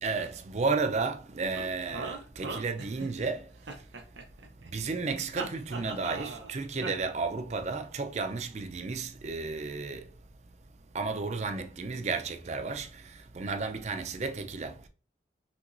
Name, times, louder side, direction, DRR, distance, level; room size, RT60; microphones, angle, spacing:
voice 1, 0.0-3.9 4.6-10.1 10.9-14.9, right 4 dB, 40° right, 0.5 m, -33 dB
sound 1, 1.5-3.3 3.7-4.7 5.3-6.5 6.8-6.9, right 3 dB, 90° right, 0.8 m, -39 dB
5.9 x 2.9 x 2.6 m
head